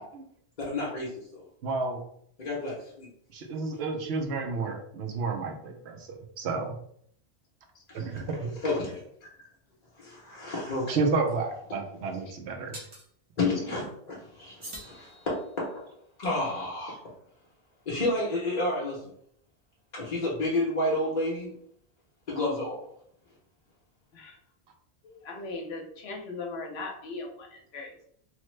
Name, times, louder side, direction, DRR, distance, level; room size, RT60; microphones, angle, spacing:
voice 1, 0.6-1.4 2.4-3.1 7.9-8.1 8.6-9.0 9.4-9.5 10.0-11.0 13.4-15.7 16.2-17.0 17.9-19.0 19.9-21.5 22.3-22.8, left 2 dB, 45° left, -5 dB, 0.8 m, -30 dB
voice 2, 1.6-2.0 3.3-6.7 7.9-8.5 10.9-12.8, right 4 dB, 75° right, 3 dB, 0.9 m, -31 dB
sound 1, 12.7-13.1 14.6-15.7, right 1 dB, 30° right, 0.7 m, -45 dB
voice 3, 25.2-28.0, left 3 dB, 70° left, 2 dB, 0.9 m, -38 dB
3.0 x 2.1 x 3.1 m, 0.66 s
omnidirectional pair, 1.1 m